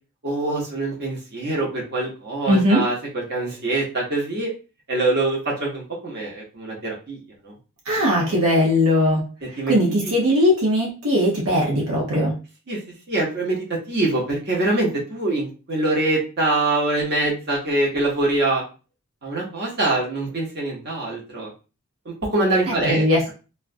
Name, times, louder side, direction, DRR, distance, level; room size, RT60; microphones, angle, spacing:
voice 1, 0.2-4.5 4.9-7.2 7.4-7.5 9.6-9.7 10.0-10.1 12.7-12.8 13.1-18.6 19.2-21.5 22.1-23.0, right 2 dB, 45° right, -3 dB, 0.9 m, -24 dB
voice 2, 2.5-2.8 7.9-12.3 22.7-23.3, left 1 dB, 75° right, -3 dB, 0.7 m, -20 dB
2.4 x 2.1 x 2.5 m, 0.33 s
head